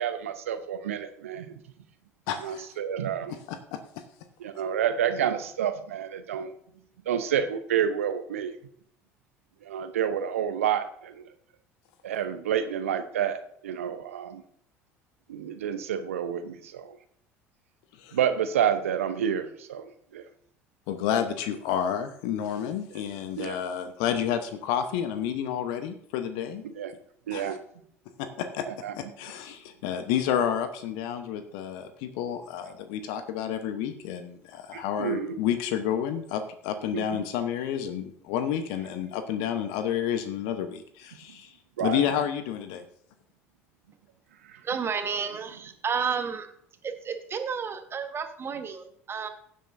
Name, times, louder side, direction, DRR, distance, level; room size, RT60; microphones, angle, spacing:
voice 1, 0.0-1.6 2.4-3.3 4.4-6.5 7.1-8.6 9.6-11.3 12.0-14.4 15.3-17.0 18.1-20.3 23.4-23.6 26.6-26.9 27.3-27.6 28.7-28.9 34.7-35.4 36.9-37.2 41.8-42.0 44.5-44.6, right 9 dB, 80° right, 10 dB, 0.8 m, -29 dB
voice 2, 2.3-2.7 3.5-3.8 18.0-18.2 20.9-26.6 27.3-27.6 28.2-28.6 28.9-41.5 41.8-42.8, left 9 dB, 65° left, 9 dB, 0.9 m, -30 dB
voice 3, 44.6-46.5 46.8-49.3, right 6 dB, 35° right, 7 dB, 1.3 m, -31 dB
16.0 x 7.7 x 2.6 m, 0.66 s
figure-of-eight pair, 65°, 7 cm